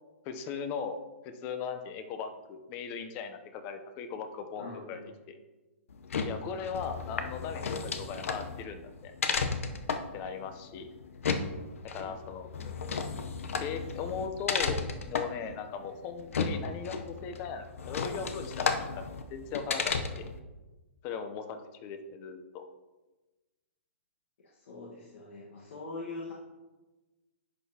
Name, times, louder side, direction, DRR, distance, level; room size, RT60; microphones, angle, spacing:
voice 1, 0.2-1.0 1.2-5.0 5.3-5.4 6.2-9.1 10.1-10.9 11.9-13.0 13.6-14.8 15.1-19.0 19.3-20.3 21.0-22.6, left 6 dB, 25° left, 8 dB, 0.6 m, -38 dB
voice 2, 4.6-5.2 12.0-12.1 24.4-26.3, left 3 dB, 65° left, -3 dB, 1.5 m, -43 dB
sound 1, 5.9-20.4, left 5 dB, 80° left, 0.8 m, -34 dB
10.5 x 6.5 x 2.8 m, 1.2 s
hypercardioid pair, 155°, 7 cm